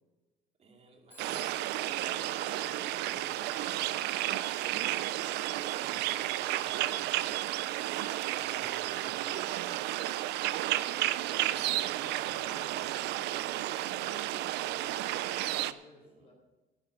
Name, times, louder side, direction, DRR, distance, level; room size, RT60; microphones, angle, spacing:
voice 1, 0.6-1.6 2.0-4.9 5.5-7.3 8.3-9.8 11.0-12.8 16.0-16.3, right 4 dB, 40° right, 3 dB, 2.5 m, -52 dB
Telephone, 1.1-3.6, left 1 dB, 10° left, 1.6 m, -58 dB
sound 1, 1.2-15.7, right 15 dB, 85° right, 0.5 m, -32 dB
voice 2, 1.3-1.7 8.5-10.1 11.2-12.9 13.2-13.4 13.8-16.3, left 2 dB, 35° left, -1 dB, 4.0 m, -55 dB
11.0 x 10.5 x 6.2 m, 1.2 s
cardioid pair, 110°, 17 cm